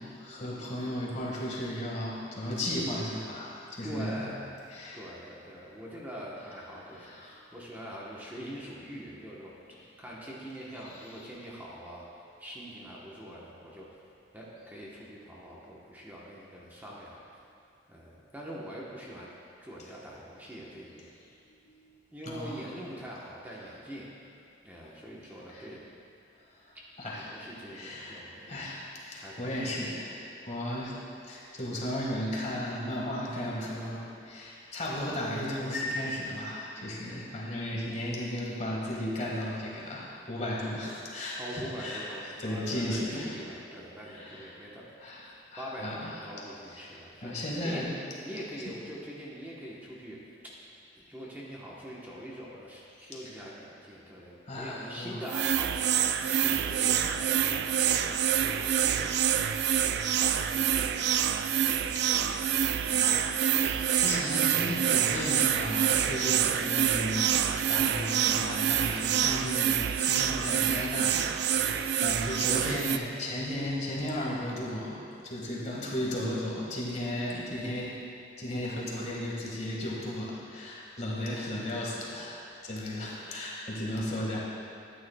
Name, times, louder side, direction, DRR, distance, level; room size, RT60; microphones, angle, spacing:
voice 1, 0.0-4.3 4.7-5.1 7.0-7.4 21.7-21.8 22.2-22.6 25.5-25.7 26.6-27.2 27.7-31.0 31.2-43.4 44.1-44.7 45.0-45.2 45.5-46.1 46.7-46.9 47.2-47.9 53.1-53.2 54.5-55.2 56.2-56.5 57.4-57.5 58.5-58.6 61.2-61.4 62.0-62.1 62.9-63.3 63.6-78.0 78.4-84.4, left 1 dB, 40° left, -4 dB, 1.6 m, -35 dB
voice 2, 3.8-4.6 4.9-9.5 10.0-12.1 12.4-13.9 14.3-17.2 17.9-19.3 19.6-21.1 22.1-24.1 24.6-25.8 27.0-28.6 29.1-29.5 41.4-44.8 45.6-47.8 48.2-50.2 50.4-50.5 51.0-56.0 56.4-59.2 59.9-61.2 61.8-63.2 81.2-81.4, equal, 10° right, -6 dB, 0.9 m, -43 dB
sound 1, 55.3-73.0, right 9 dB, 60° right, 0.3 m, -27 dB
12.5 x 9.4 x 2.2 m, 2.5 s
head